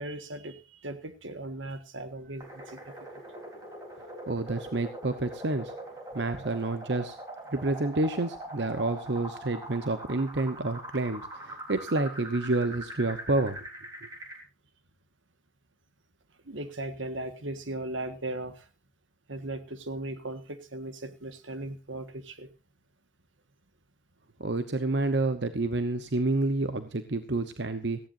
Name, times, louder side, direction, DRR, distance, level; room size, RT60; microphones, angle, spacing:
voice 1, 0.0-2.8 16.4-18.6 19.3-22.5, right 1 dB, 85° right, 9 dB, 1.6 m, -37 dB
sound 1, 2.4-14.4, right 1 dB, 20° right, 3.8 m, -42 dB
voice 2, 4.3-5.7 6.1-7.2 7.5-13.6 14.0-14.1 24.4-28.0, right 2 dB, 65° right, 9 dB, 1.0 m, -29 dB
18.0 x 15.0 x 2.7 m, 0.30 s
head